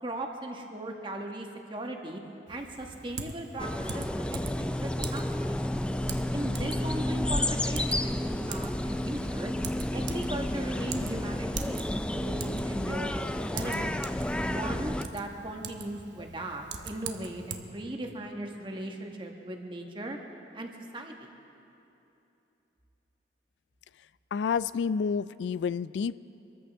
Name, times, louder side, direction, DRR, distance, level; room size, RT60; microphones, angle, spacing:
voice 1, 0.0-2.2 2.5-5.6 6.3-9.5 9.9-14.0 14.4-20.2 20.5-21.3, right 1 dB, 25° right, 2 dB, 1.3 m, -38 dB
Typing, 2.5-17.6, right 5 dB, 90° right, 1.0 m, -43 dB
sound 1, 3.6-15.0, left 1 dB, 5° left, 0.3 m, -31 dB
voice 2, 24.3-26.1, left 6 dB, 85° left, 17 dB, 0.3 m, -29 dB
25.5 x 14.0 x 3.5 m, 2.9 s
head